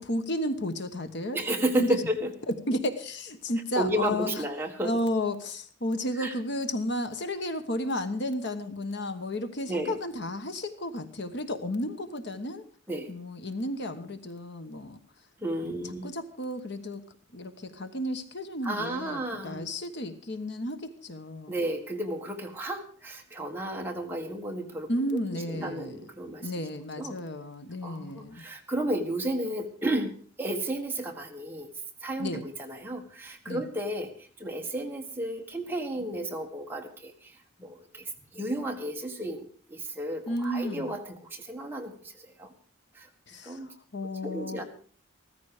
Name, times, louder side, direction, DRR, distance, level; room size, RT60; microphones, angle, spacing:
voice 1, 0.0-1.4 1.8-2.0 2.5-4.4 4.8-12.6 13.1-15.0 15.6-17.0 17.3-21.5 24.9-26.0 26.4-28.4 32.2-32.5 33.5-33.6 40.3-40.9 43.3-44.6, left 1 dB, 55° left, 9 dB, 1.2 m, -33 dB
voice 2, 1.3-2.3 3.7-4.9 6.2-6.3 9.7-10.0 12.9-13.1 15.4-16.1 18.6-19.7 21.5-26.5 27.0-27.2 27.8-31.7 32.0-37.3 37.6-38.0 38.3-42.5 42.9-43.1 43.4-43.7 44.2-44.6, right 1 dB, 10° right, 1 dB, 1.7 m, -32 dB
15.0 x 14.0 x 5.0 m, 0.43 s
head